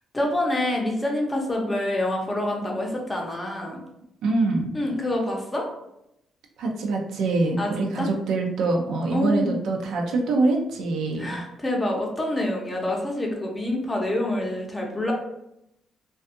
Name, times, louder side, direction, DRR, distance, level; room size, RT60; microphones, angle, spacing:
voice 1, 0.1-3.8 4.7-5.7 7.6-8.1 9.1-9.5 11.2-15.1, left 1 dB, 20° left, 0 dB, 0.6 m, -26 dB
voice 2, 4.2-4.7 6.6-11.4, right 3 dB, 80° right, 1 dB, 0.4 m, -24 dB
2.5 x 2.3 x 2.5 m, 0.83 s
cardioid pair, 90°, 0 cm